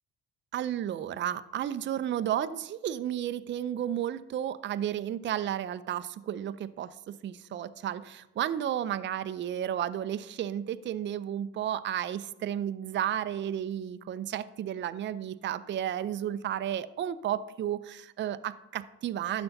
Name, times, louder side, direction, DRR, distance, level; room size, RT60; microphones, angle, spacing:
voice 1, 0.5-19.4, right 10 dB, 35° right, 13 dB, 0.5 m, -33 dB
12.0 x 7.8 x 2.7 m, 0.95 s
hypercardioid pair, 60°, 35 cm